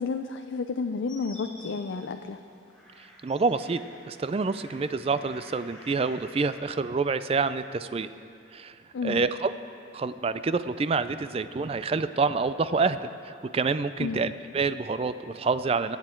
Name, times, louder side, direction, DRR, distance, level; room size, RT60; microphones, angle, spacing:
voice 1, 0.0-2.4 8.9-9.2 14.0-14.2, left 4 dB, 75° left, 6 dB, 0.4 m, -31 dB
sound 1, 1.1-6.6, left 1 dB, 5° left, 2.0 m, -50 dB
voice 2, 3.2-8.1 8.5-8.7 9.0-9.5 9.9-16.0, right 4 dB, 30° right, 13 dB, 0.3 m, -27 dB
22.0 x 8.2 x 4.5 m, 2.6 s
head